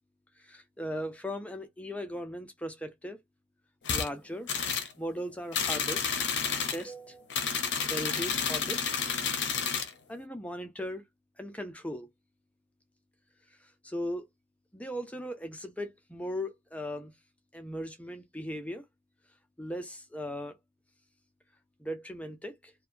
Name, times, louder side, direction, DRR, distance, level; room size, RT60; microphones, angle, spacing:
voice 1, 0.4-3.2 3.9-4.6 5.0-6.0 6.7-7.5 7.8-8.8 10.1-11.0 11.4-12.1 13.6-14.3 14.7-17.1 17.5-18.8 19.6-20.5 21.8-22.7, equal, 5° left, 0.5 m, -38 dB
sound 1, 3.8-4.1 4.5-4.9 5.5-6.8 7.3-9.9, left 6 dB, 70° left, 0.6 m, -30 dB
2.7 x 2.2 x 2.4 m
head